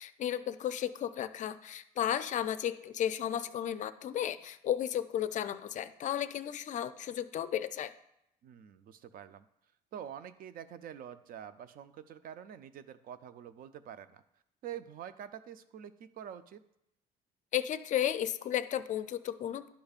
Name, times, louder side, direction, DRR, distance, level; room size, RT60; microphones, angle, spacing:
voice 1, 0.0-7.9 17.5-19.7, left 10 dB, 45° left, 12 dB, 0.4 m, -34 dB
voice 2, 8.4-9.5 9.9-14.2 14.6-16.6, right 9 dB, 60° right, 13 dB, 0.5 m, -46 dB
11.5 x 5.1 x 2.4 m, 0.79 s
cardioid pair, 110°, 17 cm